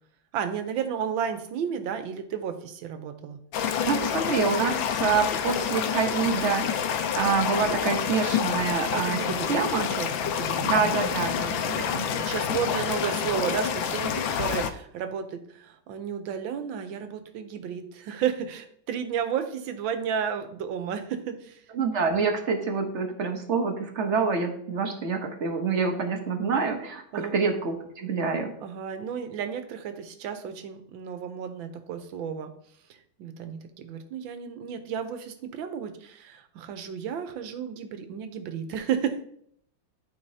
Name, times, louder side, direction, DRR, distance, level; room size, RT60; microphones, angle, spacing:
voice 1, 0.3-3.4 8.9-11.0 12.2-21.6 27.1-27.3 28.6-32.5 33.2-39.2, right 8 dB, 80° right, 8 dB, 1.5 m, -32 dB
sound 1, 3.5-14.7, left 8 dB, 80° left, 1.3 m, -28 dB
voice 2, 3.8-6.8 7.2-9.9 10.6-12.1 21.7-28.5, right 5 dB, 50° right, 4 dB, 0.9 m, -27 dB
12.0 x 4.0 x 2.7 m, 0.67 s
omnidirectional pair, 2.1 m